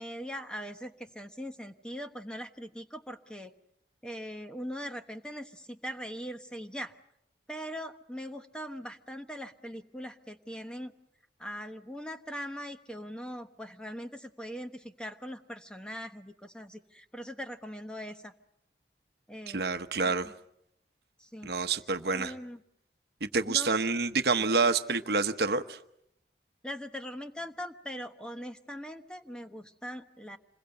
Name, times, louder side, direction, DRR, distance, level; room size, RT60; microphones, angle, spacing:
voice 1, 0.0-3.5 4.0-6.9 7.5-10.9 11.4-18.3 19.3-19.6 20.0-20.3 21.2-21.5 22.1-22.6 23.5-23.9 26.6-30.4, equal, 5° left, 6 dB, 1.1 m, -41 dB
voice 2, 19.5-20.3 21.4-22.3 23.2-25.8, right 4 dB, 65° right, 9 dB, 1.0 m, -28 dB
27.0 x 22.0 x 7.8 m, 0.77 s
head